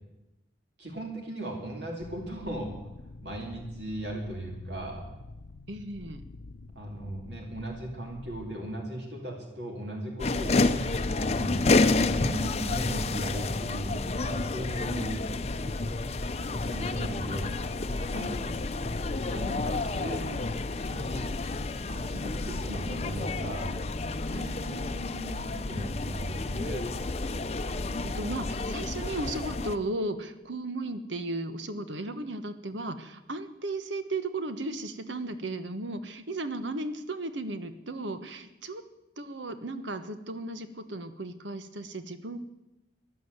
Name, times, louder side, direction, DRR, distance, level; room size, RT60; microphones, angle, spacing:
voice 1, 0.8-2.7 3.2-5.0 6.7-10.7 11.2-15.2 16.6-17.6 19.2-20.5 20.9-21.3 21.9-23.8 25.7-26.9, right 1 dB, 65° right, 1 dB, 2.7 m, -37 dB
sound 1, 2.0-8.6, left 2 dB, 75° left, 0.7 m, -47 dB
voice 2, 5.7-6.2 18.1-18.6 24.3-25.9 27.8-38.8 39.2-42.4, right 2 dB, 85° right, 10 dB, 1.3 m, -36 dB
sound 2, 10.2-29.8, left 3 dB, 35° left, 0.6 m, -30 dB
14.5 x 11.0 x 8.1 m, 0.96 s
head